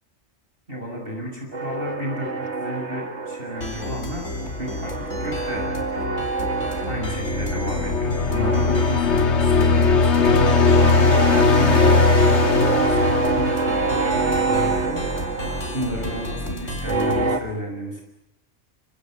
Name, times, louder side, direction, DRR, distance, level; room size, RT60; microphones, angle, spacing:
voice 1, 0.7-6.3 6.7-15.5 15.7-18.0, equal, 50° right, 1 dB, 6.8 m, -32 dB
sound 1, 1.5-4.1 4.3-8.0 8.3-17.4, right 4 dB, 70° right, 2.3 m, -26 dB
sound 2, 3.6-17.3, left 1 dB, 90° left, 4.6 m, -32 dB
sound 3, 6.9-14.2, left 4 dB, 65° left, 1.8 m, -19 dB
29.5 x 25.5 x 7.9 m, 0.84 s
omnidirectional pair, 1.2 m